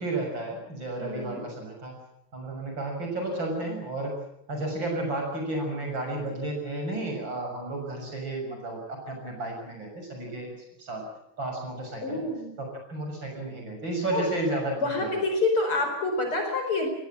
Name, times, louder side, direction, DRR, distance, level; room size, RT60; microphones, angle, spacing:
voice 1, 0.0-2.0 2.3-4.2 4.5-10.6 10.9-11.1 11.4-12.2 12.6-15.2, right 2 dB, 35° right, 2 dB, 7.3 m, -32 dB
voice 2, 0.9-1.5 12.0-12.5 14.1-14.3 14.8-16.9, left 3 dB, 45° left, 4 dB, 5.4 m, -27 dB
21.0 x 18.0 x 9.1 m, 0.79 s
omnidirectional pair, 3.4 m